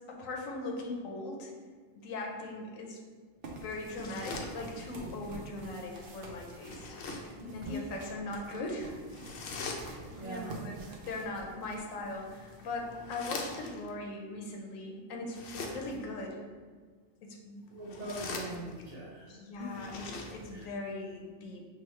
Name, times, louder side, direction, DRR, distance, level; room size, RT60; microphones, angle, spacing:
voice 1, 0.1-1.5 1.9-3.0 3.6-7.0 7.5-9.0 9.7-16.4 17.2-17.7 19.3-20.0 20.3-21.6, left 2 dB, 80° left, 1 dB, 1.1 m, -40 dB
sound 1, 3.4-13.0, right 2 dB, 55° right, 0.7 m, -47 dB
sound 2, 3.8-5.1 6.6-7.4 9.1-10.3 12.1-13.9 15.2-16.1 17.7-19.0 19.6-20.7, left 3 dB, 65° left, 0.7 m, -43 dB
voice 2, 7.4-7.9 9.8-10.5 17.7-19.8 20.5-20.7, right 1 dB, 35° right, -6 dB, 1.0 m, -42 dB
6.1 x 2.3 x 3.1 m, 1.6 s
omnidirectional pair, 1.4 m